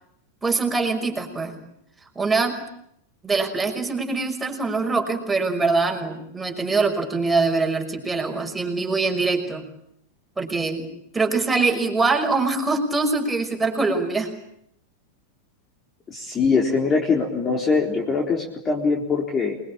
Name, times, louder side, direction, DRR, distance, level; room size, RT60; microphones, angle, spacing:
voice 1, 0.4-1.5 2.2-2.6 3.2-9.6 10.4-10.9 11.1-14.3, right 3 dB, 10° right, 2 dB, 5.8 m, -23 dB
voice 2, 16.1-19.6, left 4 dB, 20° left, 0 dB, 4.2 m, -22 dB
28.0 x 22.5 x 8.8 m, 0.74 s
figure-of-eight pair, 90°, 0 cm